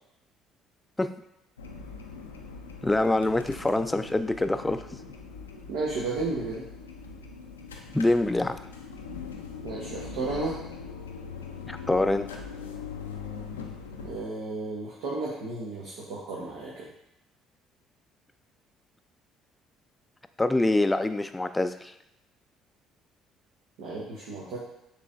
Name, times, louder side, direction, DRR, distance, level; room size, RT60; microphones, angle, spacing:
sound 1, 1.6-14.2, left 5 dB, 90° left, 0.4 m, -41 dB
voice 1, 2.8-4.9 7.9-8.6 11.7-12.3 20.4-21.9, left 2 dB, 15° left, 10 dB, 0.4 m, -25 dB
voice 2, 5.7-6.6 9.6-10.6 14.0-16.9 23.8-24.6, right 3 dB, 70° right, -6 dB, 1.0 m, -33 dB
6.7 x 3.1 x 2.5 m, 0.85 s
hypercardioid pair, 55°, 0 cm